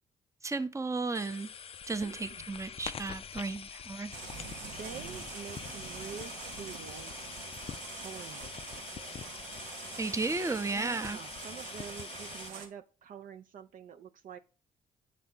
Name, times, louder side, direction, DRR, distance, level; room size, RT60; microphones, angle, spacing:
voice 1, 0.4-1.5 1.9-4.1 10.0-11.2, right 3 dB, 20° right, 0.7 m, -34 dB
sound 1, 1.1-12.5, left 7 dB, 35° left, 0.4 m, -45 dB
voice 2, 2.0-2.5 4.6-7.1 7.9-9.4 10.7-14.4, right 7 dB, 55° right, 0.5 m, -47 dB
sound 2, 4.1-12.7, right 5 dB, 85° right, 1.0 m, -45 dB
7.1 x 4.2 x 3.7 m
hypercardioid pair, 50°, 17 cm